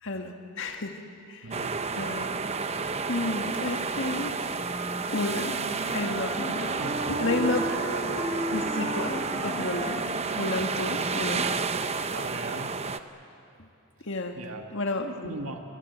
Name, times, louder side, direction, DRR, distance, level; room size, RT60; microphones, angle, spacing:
voice 1, 0.0-1.0 1.3-1.5 1.9-2.3 3.1-4.6 5.1-5.6 5.9-6.8 7.1-7.6 8.5-10.1 10.3-11.5 14.0-14.4 14.7-15.4, left 2 dB, 55° left, 4 dB, 1.8 m, -31 dB
voice 2, 1.4-1.8 6.8-8.0 12.1-12.8 14.4-14.6 15.2-15.6, right 2 dB, 70° right, 4 dB, 1.7 m, -39 dB
sound 1, 1.5-13.0, right 4 dB, 30° right, 0.8 m, -31 dB
sound 2, 4.5-11.9, equal, 10° right, 7.6 m, -36 dB
29.5 x 23.0 x 8.1 m, 2.5 s
head